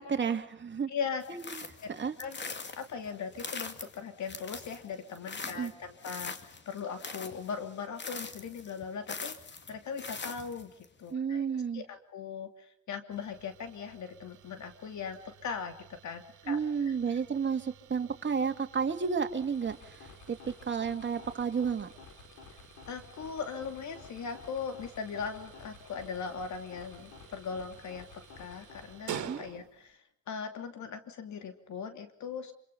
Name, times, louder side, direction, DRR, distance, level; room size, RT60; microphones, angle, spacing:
voice 1, 0.0-0.9 1.3-1.6 1.9-2.1 5.5-5.7 11.1-11.8 16.5-21.9 29.3-29.4, right 6 dB, 40° right, 5 dB, 2.7 m, -32 dB
voice 2, 0.9-1.2 2.2-2.4 2.8-9.4 9.7-10.7 11.0-11.4 11.7-16.6 22.9-30.0 30.3-32.5, left 6 dB, 70° left, 7 dB, 3.0 m, -39 dB
sound 1, 1.2-10.9, left 4 dB, 35° left, 2.5 m, -43 dB
sound 2, 13.1-30.0, right 10 dB, 75° right, 2.2 m, -50 dB
sound 3, 19.2-29.2, left 5 dB, 85° left, 5.3 m, -53 dB
26.5 x 26.5 x 5.6 m, 0.66 s
cardioid pair, 90°, 30 cm